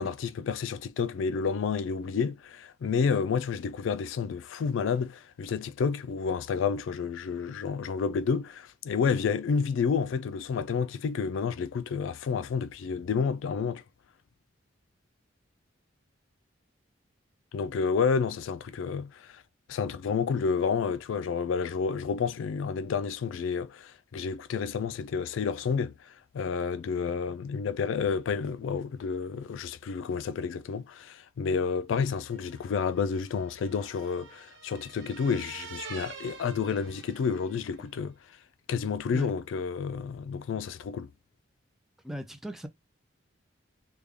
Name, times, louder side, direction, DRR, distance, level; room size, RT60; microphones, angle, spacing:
voice 1, 0.0-13.8 17.5-19.4 19.7-38.2 38.7-41.1, left 5 dB, 80° left, 0.3 m, -30 dB
sound 1, 32.3-37.8, right 5 dB, 80° right, 1.3 m, -47 dB
voice 2, 42.0-42.7, right 1 dB, ahead, 0.4 m, -36 dB
3.4 x 2.2 x 3.5 m
head